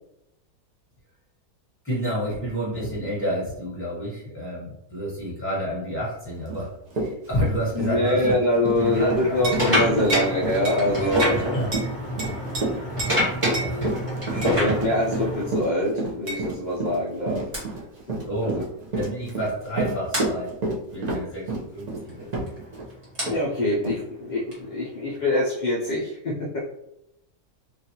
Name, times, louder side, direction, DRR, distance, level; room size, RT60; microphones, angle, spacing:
voice 1, 1.8-6.7 6.9-8.2 8.8-9.3 11.3-11.7 13.5-13.9 18.2-18.6 18.9-20.5 20.9-22.5, equal, 10° left, -7 dB, 1.3 m, -29 dB
Run, 6.5-6.6 6.9-22.9 23.3-23.4 23.8-24.0, right 3 dB, 60° right, 0.4 m, -30 dB
voice 2, 7.5-11.4 14.5-17.8 18.4-18.6 23.3-26.6, left 1 dB, 60° left, -6 dB, 0.4 m, -24 dB
sound 1, 8.8-15.6 16.4-16.6 17.5-17.6 19.0-19.1 19.3-19.5 20.1-20.3 22.0-25.2, equal, 20° right, 1.1 m, -27 dB
sound 2, 9.4-9.7 10.1-10.3 10.6-10.8 11.2-11.4 11.7-11.9 12.2-12.6 13.0-13.2 13.5-13.7 14.4-14.6 16.3-16.4, right 1 dB, 45° right, 1.0 m, -30 dB
3.0 x 2.5 x 2.8 m, 0.84 s
omnidirectional pair, 1.6 m